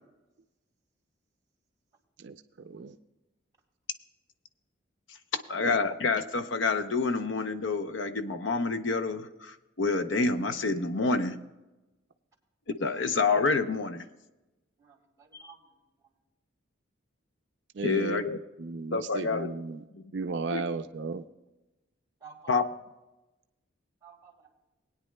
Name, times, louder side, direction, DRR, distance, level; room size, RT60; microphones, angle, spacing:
voice 1, 2.2-3.0 17.7-18.2 18.6-19.8 20.1-21.2, right 3 dB, 60° right, 9 dB, 0.4 m, -35 dB
voice 2, 5.3-11.4 12.8-14.0 17.8-18.4 18.9-19.5 19.9-20.0 20.5-20.6 22.5-22.6, left 4 dB, 70° left, 9 dB, 0.7 m, -28 dB
voice 3, 14.8-15.8 22.2-22.6 24.0-24.5, right 3 dB, 20° right, 0 dB, 2.3 m, -51 dB
20.5 x 9.7 x 2.2 m, 1.0 s
head